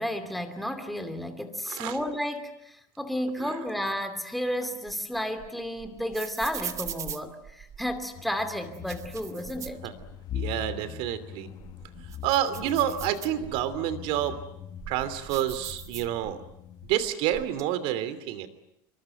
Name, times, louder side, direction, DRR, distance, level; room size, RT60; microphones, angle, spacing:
voice 1, 0.0-9.8, equal, ahead, 7 dB, 2.7 m, -32 dB
voice 2, 1.7-2.0 3.4-3.5 9.8-9.9 10.3-11.5 12.2-14.4 14.9-16.4 16.9-18.5, right 11 dB, 60° right, 13 dB, 2.9 m, -28 dB
sound 1, 4.6-8.0 8.6-10.5 10.8-10.9 11.4-13.8 14.4-16.5 16.8-17.6, right 8 dB, 30° right, 1.4 m, -41 dB
sound 2, 8.1-17.0, left 11 dB, 40° left, 1.3 m, -42 dB
26.5 x 24.0 x 9.2 m, 0.79 s
cardioid pair, 145°, 11 cm